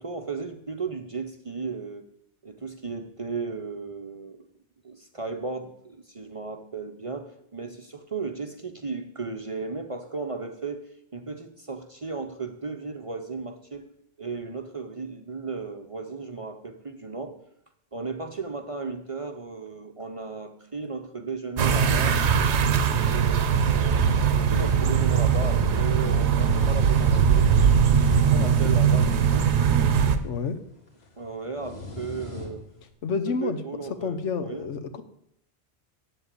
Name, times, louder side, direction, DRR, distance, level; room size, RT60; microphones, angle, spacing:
voice 1, 0.0-2.1 2.4-4.5 4.8-17.4 17.9-22.2 23.0-27.8 28.3-29.6 31.2-32.6 33.4-34.6, right 4 dB, 35° right, 6 dB, 0.7 m, -35 dB
sound 1, 21.6-30.2, right 7 dB, 70° right, 1.1 m, -21 dB
sound 2, 26.3-32.9, left 3 dB, 60° left, 2.3 m, -44 dB
voice 2, 30.2-30.6 33.0-33.6 34.0-35.0, left 5 dB, 75° left, 10 dB, 1.2 m, -29 dB
7.9 x 7.7 x 8.3 m, 0.74 s
omnidirectional pair, 1.2 m